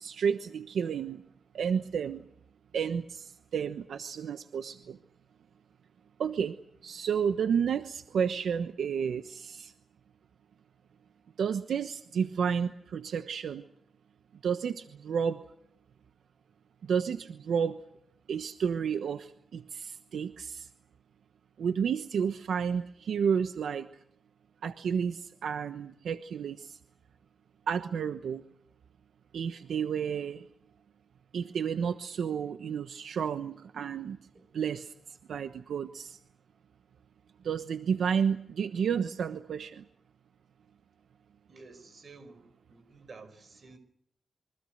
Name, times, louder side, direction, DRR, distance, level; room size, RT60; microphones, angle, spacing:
voice 1, 0.0-1.2 1.5-2.2 2.7-5.0 6.2-6.5 6.8-9.7 11.4-13.6 14.4-15.4 16.9-17.8 18.3-20.7 21.6-23.9 24.6-26.8 27.7-28.4 29.3-30.4 31.3-34.2 34.5-34.9 35.3-36.2 37.4-39.8, right 7 dB, 75° right, 8 dB, 1.1 m, -31 dB
voice 2, 41.5-43.8, right 3 dB, 40° right, 10 dB, 5.2 m, -52 dB
28.0 x 24.5 x 6.6 m, 0.69 s
wide cardioid pair, 175°, 0 cm